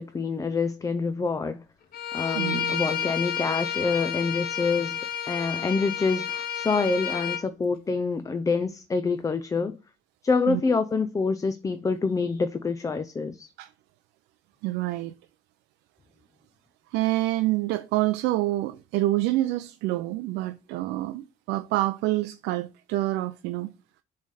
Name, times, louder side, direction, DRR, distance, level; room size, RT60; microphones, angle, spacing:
voice 1, 0.0-1.6 2.1-5.0 5.2-9.8 10.2-13.5, left 4 dB, 20° left, 0.5 m, -26 dB
Bowed string instrument, 1.9-7.4, left 8 dB, 60° left, 1.0 m, -30 dB
voice 2, 2.3-2.8 10.5-10.6 13.6-13.7 14.6-15.1 16.9-23.7, right 17 dB, 90° right, 0.4 m, -27 dB
7.0 x 3.3 x 4.1 m
cardioid pair, 110°, 17 cm